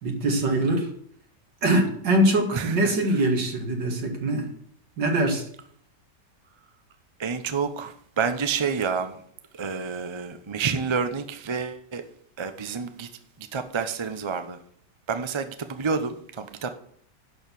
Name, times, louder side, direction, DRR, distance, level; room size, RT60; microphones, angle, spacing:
voice 1, 0.0-0.9 1.6-4.5 5.0-5.5, right 1 dB, 80° right, 2.7 m, -23 dB
voice 2, 2.5-3.0 7.2-9.2 9.5-12.0 12.4-13.1 13.4-14.6 15.1-16.7, right 5 dB, 35° right, 0.4 m, -29 dB
11.0 x 4.7 x 6.9 m
omnidirectional pair, 1.9 m